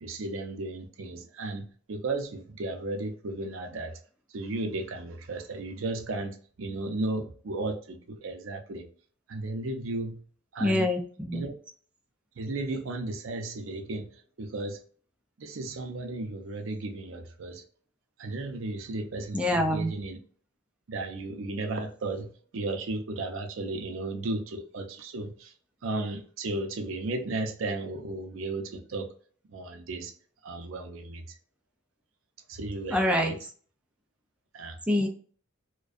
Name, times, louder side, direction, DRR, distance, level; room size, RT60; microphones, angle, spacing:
voice 1, 0.0-3.9 4.3-8.8 9.3-10.2 10.5-10.9 11.3-11.5 12.4-14.8 15.4-17.6 18.2-20.2 20.9-25.5 25.8-29.1 29.5-30.1 30.4-31.4 32.5-33.4 34.5-34.8, right 2 dB, 70° right, 0.5 m, -34 dB
voice 2, 10.6-11.4 19.3-19.9 32.9-33.3 34.9-35.1, left 1 dB, 5° right, 0.3 m, -25 dB
2.5 x 2.2 x 2.3 m
head